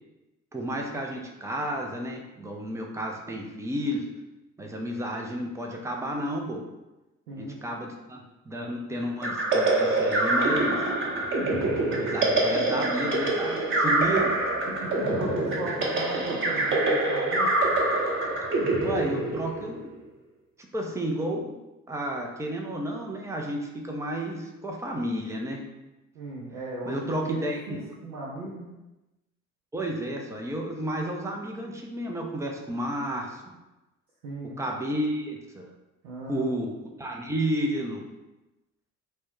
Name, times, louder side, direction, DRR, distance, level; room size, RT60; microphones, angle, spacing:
voice 1, 0.5-4.0 4.6-6.7 7.4-10.9 11.9-14.3 18.8-19.9 20.7-21.5 21.9-25.6 26.9-27.8 29.7-33.6 34.6-35.7 36.3-36.7 37.0-38.0, right 1 dB, 10° right, 1 dB, 0.3 m, -31 dB
sound 1, 9.2-19.8, right 2 dB, 30° right, 0.8 m, -25 dB
voice 2, 13.5-14.3 14.7-17.5 26.1-28.7 34.2-34.6 36.0-36.5, right 1 dB, 80° right, -5 dB, 0.6 m, -36 dB
3.6 x 2.0 x 3.0 m, 1.0 s
figure-of-eight pair, 55°, 42 cm